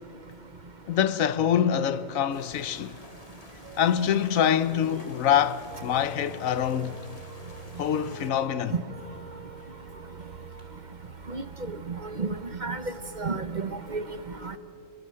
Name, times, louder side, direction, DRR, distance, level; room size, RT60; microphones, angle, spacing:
voice 1, 0.9-2.9 3.8-7.0 7.8-8.7, left 9 dB, 80° left, 1.2 m, -25 dB
sound 1, 2.3-8.3, left 2 dB, 25° left, 1.8 m, -50 dB
sound 2, 3.6-13.3, right 4 dB, 75° right, 1.7 m, -47 dB
Clock, 4.7-10.7, equal, 45° left, 4.4 m, -57 dB
voice 2, 13.2-14.0 14.4-14.6, right 4 dB, 40° right, 1.0 m, -30 dB
28.5 x 22.0 x 7.6 m
omnidirectional pair, 1.4 m